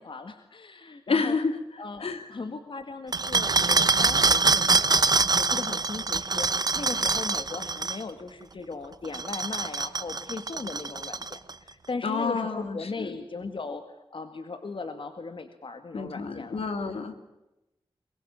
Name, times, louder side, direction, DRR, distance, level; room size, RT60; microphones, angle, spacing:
voice 1, 0.0-1.4 1.8-5.1 5.4-16.6, left 3 dB, 60° left, 9 dB, 1.8 m, -38 dB
voice 2, 1.1-1.5 2.0-2.3 12.0-13.1 15.9-17.2, left 4 dB, 80° left, 8 dB, 2.8 m, -29 dB
sound 1, 3.1-8.0 9.0-11.5, right 4 dB, 45° right, 0.9 m, -24 dB
23.0 x 22.5 x 8.7 m, 0.95 s
wide cardioid pair, 105°, 10 cm